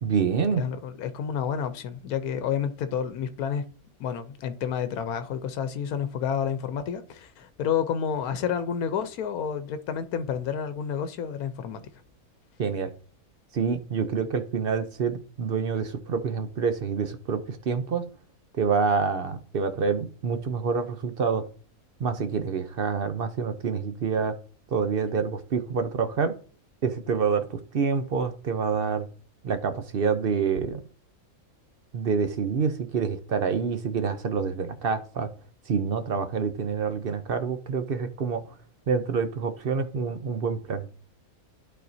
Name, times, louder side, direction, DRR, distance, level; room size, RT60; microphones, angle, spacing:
voice 1, 0.0-0.6 12.6-12.9 13.5-18.0 18.5-21.5 22.0-24.3 24.7-26.3 26.8-29.1 29.4-30.8 31.9-35.3 35.7-38.4 38.9-40.9, right 5 dB, 55° right, 0.6 m, -27 dB
voice 2, 0.6-3.6 4.0-11.8, left 8 dB, 90° left, 1.2 m, -30 dB
11.5 x 4.2 x 2.6 m
omnidirectional pair, 1.5 m